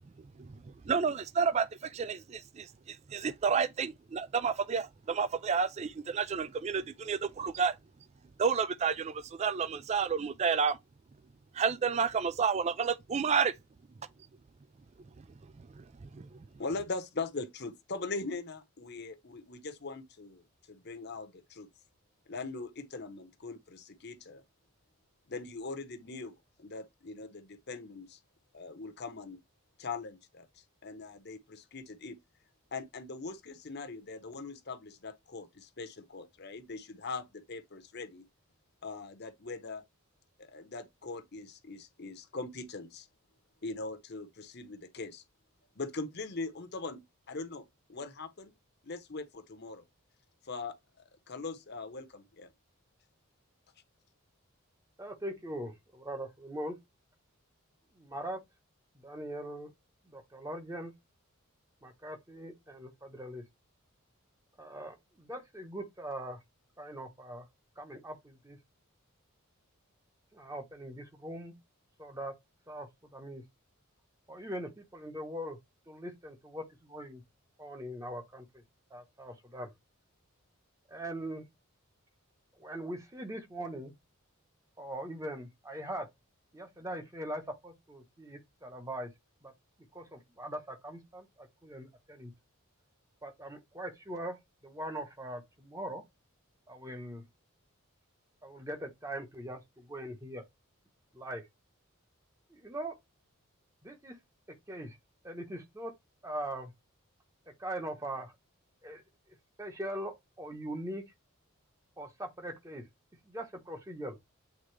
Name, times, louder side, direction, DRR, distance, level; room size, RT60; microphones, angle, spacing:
voice 1, 0.4-7.7 8.4-10.8 11.5-13.5 15.8-16.4, right 6 dB, 30° right, 0.3 m, -30 dB
voice 2, 16.6-20.4 20.7-21.7 22.3-24.4 25.3-28.2 28.5-29.4 29.8-30.5 30.8-32.2 32.7-38.2 38.8-39.8 40.4-43.1 43.6-45.2 45.8-47.0 47.3-48.5 48.8-49.8 50.4-52.5, left 3 dB, 50° left, 0.9 m, -41 dB
voice 3, 55.0-56.8 58.0-58.4 59.0-59.7 60.1-60.9 61.8-63.4 64.6-66.4 66.8-67.5 67.8-68.6 70.3-71.5 72.0-72.3 72.7-73.4 74.3-75.6 75.9-77.2 77.6-78.5 78.9-79.7 80.9-81.4 82.6-83.9 84.8-86.1 86.5-89.1 89.4-89.5 89.9-92.3 93.2-94.3 94.6-96.0 96.7-97.3 98.4-100.4 101.1-101.4 102.5-103.0 103.8-104.2 104.7-105.0 105.2-105.9 106.2-106.7 107.6-108.3 108.8-109.0 109.6-111.0 112.0-112.8 113.3-114.2, right 1 dB, 15° right, 1.0 m, -41 dB
8.2 x 3.6 x 3.3 m
head